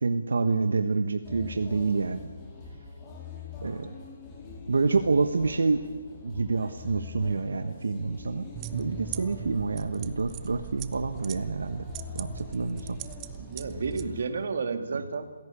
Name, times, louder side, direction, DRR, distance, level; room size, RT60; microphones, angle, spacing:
voice 1, 0.0-2.3 3.6-4.0 4.7-5.8 6.2-11.9 12.1-13.0 14.9-15.0, right 4 dB, 80° right, 8 dB, 1.4 m, -27 dB
sound 1, 1.2-14.5, left 4 dB, 20° left, 4.3 m, -44 dB
sound 2, 8.6-14.1, right 12 dB, 20° right, 0.7 m, -40 dB
voice 2, 13.4-15.3, right 5 dB, 60° right, 7 dB, 2.3 m, -31 dB
27.5 x 17.0 x 8.6 m, 1.4 s
hypercardioid pair, 160°, 0 cm